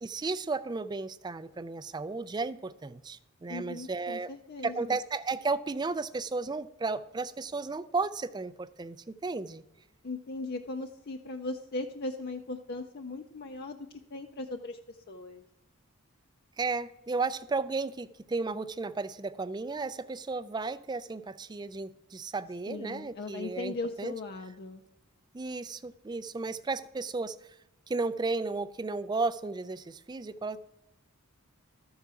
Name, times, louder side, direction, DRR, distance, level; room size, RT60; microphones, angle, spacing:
voice 1, 0.0-4.3 4.6-9.6 16.6-24.1 25.3-27.4 27.9-30.6, right 3 dB, 20° right, 15 dB, 0.4 m, -34 dB
voice 2, 3.5-5.0 10.0-13.8 14.1-15.4 22.7-24.8, left 2 dB, 45° left, 4 dB, 0.5 m, -38 dB
13.0 x 4.8 x 6.8 m, 0.92 s
head